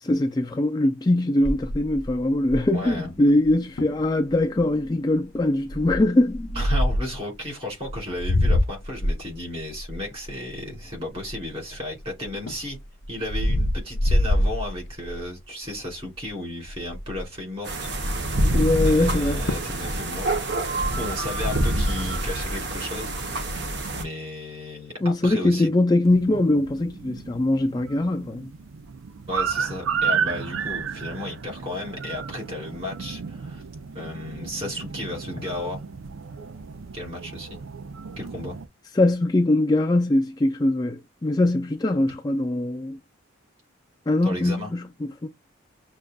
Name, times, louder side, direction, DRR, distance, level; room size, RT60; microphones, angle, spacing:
voice 1, 0.0-6.5 18.5-19.4 25.0-28.5 39.0-43.0 44.1-45.3, left 1 dB, 20° left, 0.3 m, -22 dB
sound 1, 1.4-2.9 3.4-3.5 3.8-4.0 4.6-4.9 5.7-7.2 7.8-11.7 12.2-15.3 15.7-16.0 16.3-16.4 16.6-17.4 19.1-19.2 19.5-19.8 20.1-21.1, left 1 dB, 60° left, 0.6 m, -25 dB
voice 2, 2.7-3.1 6.5-12.8 13.1-18.4 18.8-20.3 20.9-23.1 23.4-25.7 29.3-33.6 33.9-35.8 36.9-37.6 38.2-38.6 44.2-44.7, left 1 dB, 30° right, 2.7 m, -34 dB
sound 2, 17.7-24.0, right 1 dB, 55° right, 0.9 m, -26 dB
sound 3, 26.0-38.7, right 6 dB, 80° right, 0.5 m, -33 dB
6.4 x 2.4 x 2.2 m
head